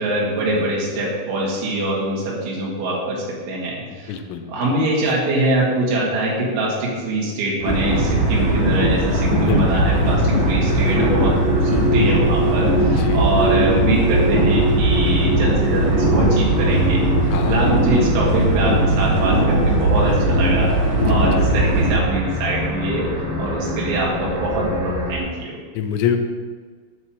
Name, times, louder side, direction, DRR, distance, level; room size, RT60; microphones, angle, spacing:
voice 1, 0.0-4.1 4.5-23.1 23.4-25.6, right 2 dB, 80° right, -5 dB, 4.4 m, -23 dB
voice 2, 3.9-4.5 9.4-10.1 13.0-13.3 17.3-17.6 21.0-21.6 25.7-26.2, left 8 dB, 80° left, 6 dB, 3.1 m, -26 dB
sound 1, 7.6-25.2, equal, 20° right, 1.5 m, -25 dB
sound 2, 7.6-22.0, right 1 dB, 45° right, 3.2 m, -19 dB
9.5 x 4.3 x 7.5 m, 1.5 s
omnidirectional pair, 5.5 m